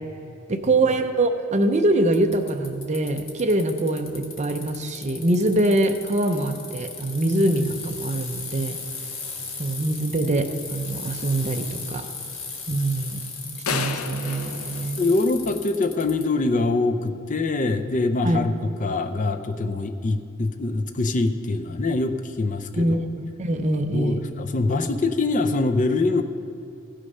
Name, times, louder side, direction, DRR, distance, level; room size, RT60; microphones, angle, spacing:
voice 1, 0.5-8.8 9.6-12.1 12.7-13.2 13.5-15.0 18.2-18.4 22.8-23.0 23.4-24.2, right 1 dB, 35° right, 6 dB, 0.6 m, -23 dB
Bicycle, 2.1-16.2, left 4 dB, 65° left, 1.6 m, -36 dB
sound 1, 13.7-15.8, left 6 dB, 90° left, 0.6 m, -31 dB
voice 2, 15.0-18.5 18.8-23.0 23.9-26.2, left 3 dB, 35° left, 7 dB, 0.5 m, -24 dB
15.5 x 6.4 x 5.5 m, 2.7 s
head